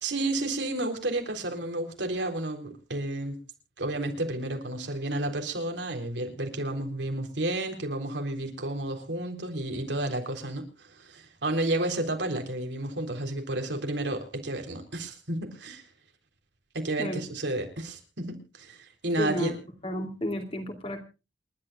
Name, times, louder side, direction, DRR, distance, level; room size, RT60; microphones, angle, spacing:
voice 1, 0.0-3.4 3.8-15.8 16.7-19.5, right 1 dB, 80° right, 3.8 m, -31 dB
voice 2, 19.2-19.6 19.8-21.0, left 1 dB, 30° left, 2.9 m, -32 dB
28.0 x 12.0 x 2.4 m
head